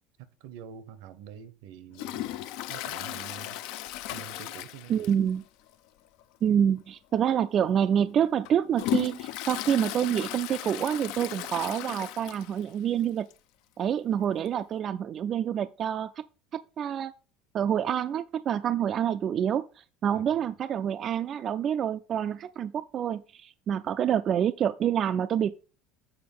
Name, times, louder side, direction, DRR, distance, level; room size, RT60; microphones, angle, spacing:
voice 1, 0.2-2.2 2.7-3.6 4.1-5.2 20.1-20.6, right 8 dB, 80° right, 0.9 m, -46 dB
Toilet flush, 1.9-5.4 5.7-5.8 6.2-6.3 7.1-7.3 7.8-12.7 13.0-13.1 13.3-13.4 14.5-14.6, left 14 dB, 75° left, 0.5 m, -36 dB
voice 2, 4.9-5.4 6.4-13.3 13.8-16.2 16.5-17.1 17.5-25.5, right 9 dB, 40° right, 0.3 m, -27 dB
7.8 x 4.2 x 5.4 m
cardioid pair, 135°, 0 cm